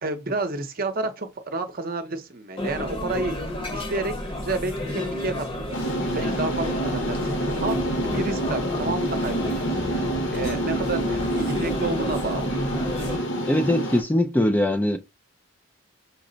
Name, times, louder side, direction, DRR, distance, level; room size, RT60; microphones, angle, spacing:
voice 1, 0.0-3.3 3.7-12.5, right 2 dB, 45° right, 0.7 m, -30 dB
sound 1, 2.6-13.2, left 1 dB, 25° left, 0.9 m, -32 dB
sound 2, 5.7-14.0, right 1 dB, 60° left, 1.2 m, -27 dB
voice 2, 13.5-15.0, left 1 dB, 10° left, 0.4 m, -21 dB
5.8 x 2.1 x 3.8 m
head